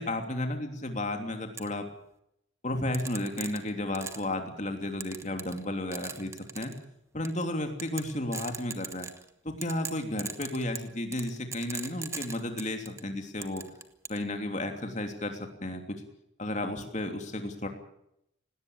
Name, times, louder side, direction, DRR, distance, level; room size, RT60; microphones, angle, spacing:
voice 1, 0.0-1.8 2.6-6.7 7.1-9.1 9.4-13.6 14.1-15.8 16.4-17.7, left 1 dB, 35° left, 5 dB, 3.1 m, -33 dB
sound 1, 1.6-1.7 2.9-4.3 5.0-5.6 5.9-6.8 7.2-7.4 7.8-9.3 9.6-13.0 13.4-14.2, right 5 dB, 15° right, 1.2 m, -39 dB
18.5 x 18.0 x 8.8 m, 0.77 s
head